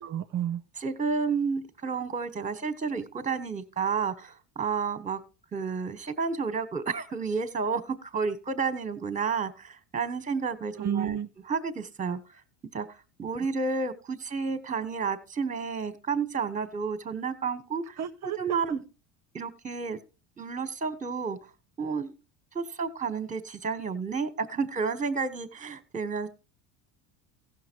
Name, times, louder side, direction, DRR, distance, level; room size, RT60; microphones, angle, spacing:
voice 1, 0.0-0.6 10.8-11.3 18.0-18.4, right 9 dB, 35° right, 8 dB, 0.7 m, -31 dB
voice 2, 0.8-5.2 5.5-11.2 11.5-12.2 12.7-12.9 13.2-17.9 18.2-18.8 19.3-20.0 20.4-21.4 21.8-22.1 22.5-26.3, right 5 dB, 15° right, 12 dB, 1.3 m, -31 dB
15.5 x 6.4 x 4.6 m, 0.33 s
supercardioid pair, 95°, 49 cm